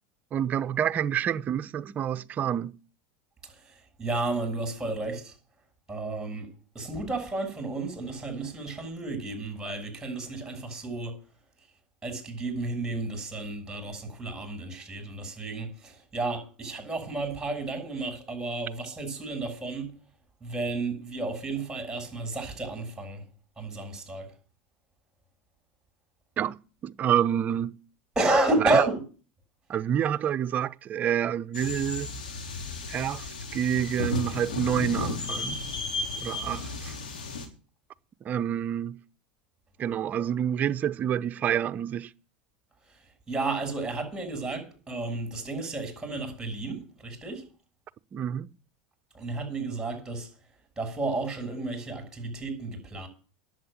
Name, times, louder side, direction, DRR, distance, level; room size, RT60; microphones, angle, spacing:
voice 1, 0.3-2.7 26.4-27.8 28.6-28.8 29.7-32.1 32.9-35.6 36.2-37.0 38.2-39.0 39.8-42.1 48.1-48.5, right 9 dB, 35° right, 0.7 m, -28 dB
voice 2, 3.5-5.3 5.9-6.5 6.7-11.1 12.0-19.9 20.4-23.2 23.6-24.3 28.1-29.0 43.3-47.4 49.1-50.3 50.8-53.1, right 2 dB, 15° right, 6.7 m, -31 dB
sound 1, 31.5-37.5, left 3 dB, 85° left, 3.8 m, -34 dB
10.5 x 7.9 x 8.9 m
hypercardioid pair, 100°, 5 cm